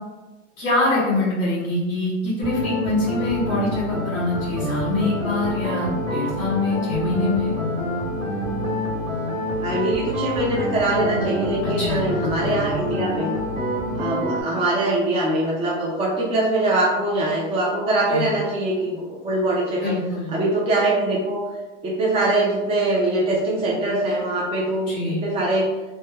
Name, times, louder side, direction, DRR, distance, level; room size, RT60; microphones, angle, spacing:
voice 1, 0.6-7.5 11.6-12.0 12.4-12.5 18.1-18.3 19.8-20.3 24.9-25.2, left 2 dB, 40° left, -7 dB, 1.1 m, -24 dB
sound 1, 2.4-14.4, equal, 80° right, 1.0 m, -26 dB
voice 2, 9.6-13.3 13.9-19.9 20.3-21.4 21.8-25.7, right 2 dB, 15° right, -5 dB, 0.4 m, -23 dB
2.2 x 2.1 x 2.9 m, 1.1 s
hypercardioid pair, 110°, 37 cm